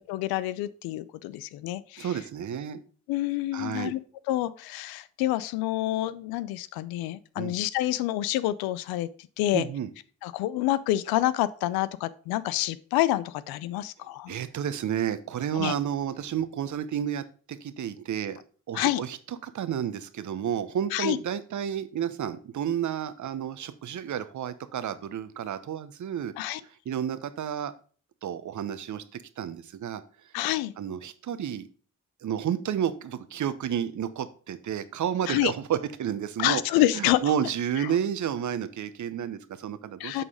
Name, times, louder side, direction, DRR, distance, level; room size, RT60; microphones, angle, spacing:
voice 1, 0.0-2.1 3.1-4.0 4.3-9.1 9.4-9.7 10.2-14.4 15.5-15.7 18.7-19.0 20.9-21.2 26.4-26.6 30.3-30.7 35.3-35.5 36.4-37.3 40.0-40.2, left 15 dB, 80° left, 17 dB, 0.5 m, -27 dB
voice 2, 2.0-2.8 3.5-3.9 7.4-7.6 9.5-9.9 14.3-18.4 18.7-26.3 26.9-27.7 28.2-30.0 30.8-31.7 32.2-40.2, right 9 dB, 55° right, 13 dB, 0.8 m, -31 dB
7.7 x 4.1 x 4.9 m, 0.41 s
hypercardioid pair, 45°, 36 cm